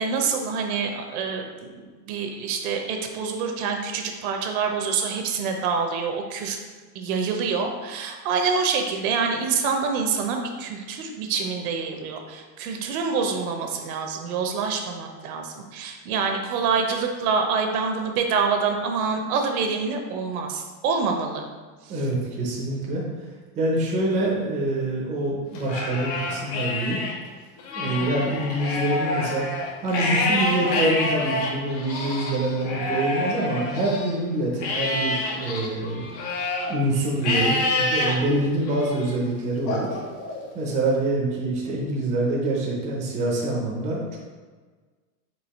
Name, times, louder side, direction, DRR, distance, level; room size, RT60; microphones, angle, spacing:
voice 1, 0.0-6.6 6.9-21.5 21.8-22.1 27.8-28.1, right 5 dB, 60° right, 4 dB, 0.8 m, -26 dB
voice 2, 21.9-23.0 23.6-27.0 27.8-29.5 29.8-36.1 36.7-39.9 40.5-44.2, right 1 dB, 15° right, -3 dB, 0.5 m, -25 dB
Livestock farm animals working animals, 25.5-27.1 27.6-34.1 34.6-36.7 37.2-38.1 38.7-39.1 39.7-40.7, left 2 dB, 90° left, 1.2 m, -27 dB
4.8 x 2.7 x 4.0 m, 1.4 s
supercardioid pair, 160°, 48 cm